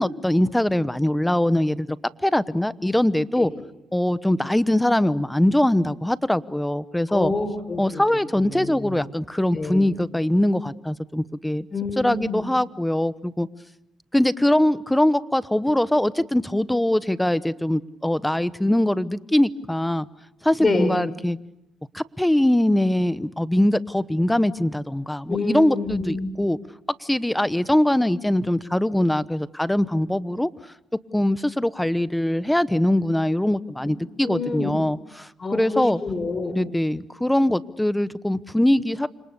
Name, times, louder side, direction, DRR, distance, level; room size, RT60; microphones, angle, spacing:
voice 1, 0.0-2.0 2.2-3.5 3.9-7.3 7.8-11.7 12.0-13.5 14.1-20.1 20.4-21.4 21.9-26.6 27.0-30.5 31.1-36.0 36.5-39.1, left 1 dB, 5° left, 16 dB, 1.0 m, -22 dB
voice 2, 7.1-8.0 8.4-9.0 9.5-9.9 11.7-12.4 20.6-21.0 25.3-26.3 34.2-34.7 35.4-36.6, left 3 dB, 30° left, 9 dB, 5.0 m, -27 dB
30.0 x 26.5 x 6.8 m, 0.84 s
cardioid pair, 90°, 0 cm